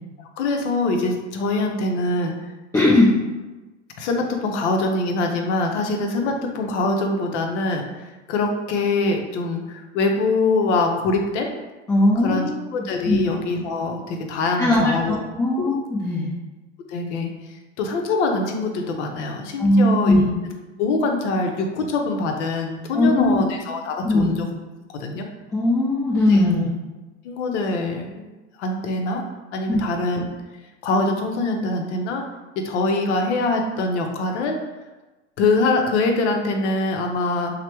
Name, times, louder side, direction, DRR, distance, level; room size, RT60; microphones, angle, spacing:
voice 1, 0.4-2.3 4.0-7.8 8.3-11.5 12.2-12.5 12.7-15.2 15.6-15.7 16.9-17.3 17.8-20.2 20.8-24.4 24.9-25.3 26.3-26.4 27.2-29.2 29.5-30.2 30.8-32.2 32.6-34.6 35.4-37.5, left 3 dB, 70° left, 3 dB, 0.6 m, -23 dB
voice 2, 2.7-3.2 11.9-13.2 14.6-16.3 19.6-20.2 22.9-23.4 24.0-24.3 25.5-26.7 29.7-29.8, left 1 dB, 10° left, -9 dB, 0.5 m, -19 dB
3.1 x 2.1 x 2.9 m, 1.1 s
hypercardioid pair, 100°, 37 cm